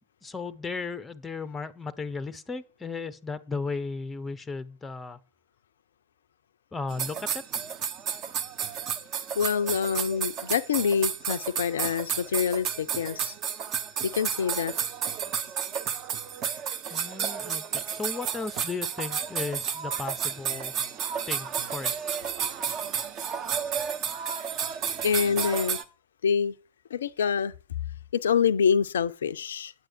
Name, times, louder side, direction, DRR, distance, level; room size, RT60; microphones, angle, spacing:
voice 1, 0.2-5.2 6.7-7.4 16.9-20.7 21.3-21.9, left 4 dB, 10° left, 0.7 m, -35 dB
sound 1, 6.9-25.8, right 8 dB, 35° right, 1.1 m, -32 dB
voice 2, 9.4-13.3 14.1-14.7 25.0-25.8 26.2-26.5 26.9-27.5 28.1-29.7, left 7 dB, 65° left, 0.4 m, -26 dB
9.5 x 7.8 x 4.5 m
figure-of-eight pair, 90°, 0 cm